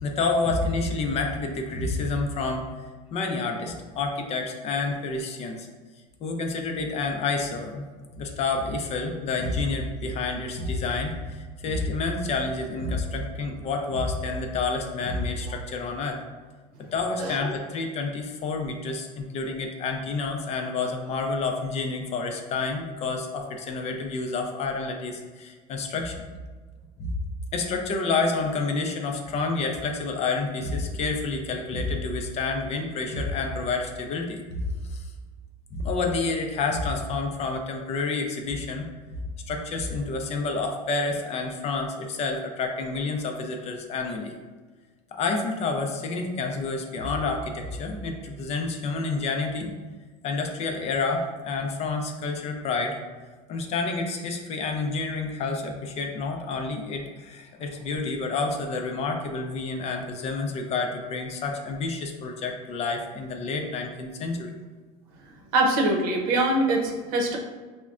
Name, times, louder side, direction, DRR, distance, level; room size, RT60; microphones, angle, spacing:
voice 1, 0.0-2.7 3.1-5.7 6.2-7.8 8.2-16.2 16.9-26.3 27.0-27.1 27.5-34.6 34.9-35.1 35.7-38.9 39.5-44.3 45.1-49.7 50.2-52.9 53.5-64.5, left 3 dB, 35° left, 3 dB, 0.5 m, -29 dB
voice 2, 17.2-17.5 65.5-67.4, right 2 dB, 90° right, 1 dB, 0.7 m, -23 dB
5.7 x 2.1 x 2.4 m, 1.4 s
supercardioid pair, 140°, 19 cm